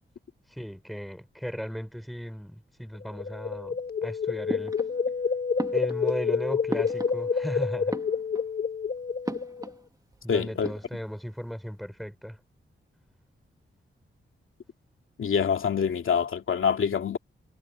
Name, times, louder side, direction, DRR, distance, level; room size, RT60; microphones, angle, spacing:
voice 1, 0.5-4.7 5.7-8.0 10.2-12.4, equal, ahead, 4.3 m, -36 dB
sound 1, 3.0-9.7, left 6 dB, 50° left, 1.4 m, -29 dB
sound 2, 4.5-5.2 5.6-7.5 7.8-8.6 9.2-9.9 10.1-10.2 10.5-11.2, right 2 dB, 15° right, 2.3 m, -37 dB
voice 2, 10.3-10.7 15.2-17.2, left 7 dB, 75° left, 2.5 m, -25 dB
wide cardioid pair, 140°, 21 cm